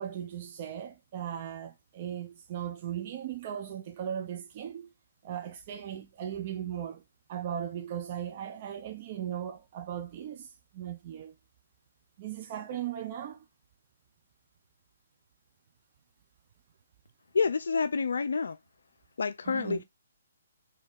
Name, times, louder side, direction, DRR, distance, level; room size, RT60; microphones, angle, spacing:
voice 1, 0.0-4.9 5.2-7.0 7.3-11.3 12.2-13.4 19.4-19.8, right 10 dB, 40° right, 0.7 m, -38 dB
voice 2, 17.3-18.6 19.2-19.8, left 5 dB, 65° left, 0.3 m, -28 dB
4.2 x 3.6 x 3.4 m
figure-of-eight pair, 135°, 0 cm